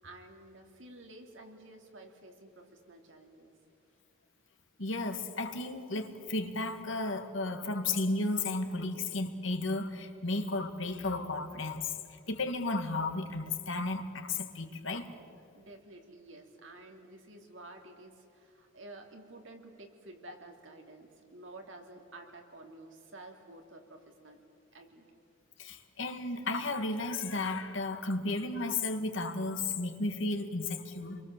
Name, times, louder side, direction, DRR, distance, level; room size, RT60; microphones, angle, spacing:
voice 1, 0.0-3.5 15.5-24.4 24.7-25.1, right 2 dB, 70° right, 3 dB, 3.2 m, -51 dB
voice 2, 4.8-15.1 25.6-31.2, left 2 dB, 70° left, 6 dB, 2.1 m, -34 dB
28.5 x 23.0 x 7.6 m, 2.5 s
head